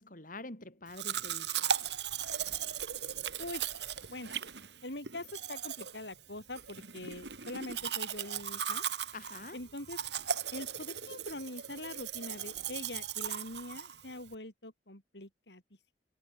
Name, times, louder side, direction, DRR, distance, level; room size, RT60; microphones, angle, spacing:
voice 1, 0.0-1.8 9.1-9.6, left 2 dB, 50° left, 6.2 m, -46 dB
Domestic sounds home sounds, 0.9-14.3, right 8 dB, 75° right, 4.1 m, -38 dB
voice 2, 4.8-8.8 9.5-10.0 10.5-15.6, left 1 dB, 75° left, 6.7 m, -43 dB
head